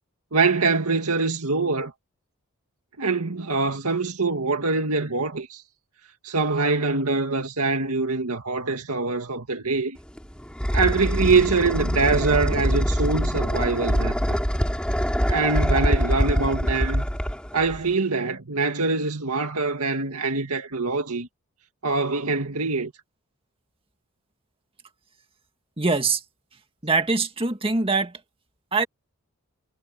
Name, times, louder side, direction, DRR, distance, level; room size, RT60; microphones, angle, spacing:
voice 1, 0.3-1.9 3.0-5.6 6.2-10.0 10.7-14.4 15.3-17.1 17.5-21.3 21.8-22.9, right 3 dB, 90° right, 2.1 m, -24 dB
sound 1, 10.0-17.9, equal, 5° left, 3.1 m, -24 dB
voice 2, 25.8-26.2 26.8-28.2 28.7-28.9, right 3 dB, 25° right, 1.9 m, -23 dB
head